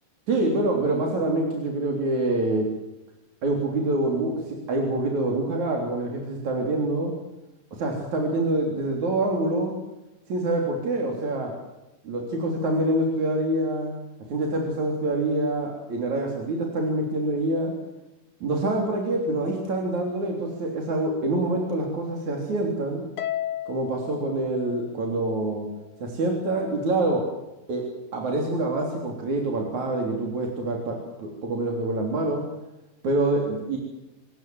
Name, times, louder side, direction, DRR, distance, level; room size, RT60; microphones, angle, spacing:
voice 1, 0.3-2.7 3.4-7.1 7.8-9.7 10.3-11.5 12.0-13.9 14.3-17.7 18.4-23.0 23.7-25.7 26.0-27.2 27.7-27.8 28.1-32.4 33.0-33.8, right 2 dB, 55° right, 1 dB, 4.7 m, -26 dB
Harp, 23.2-25.6, left 12 dB, 60° left, 1.4 m, -34 dB
26.5 x 20.5 x 7.8 m, 0.98 s
omnidirectional pair, 3.9 m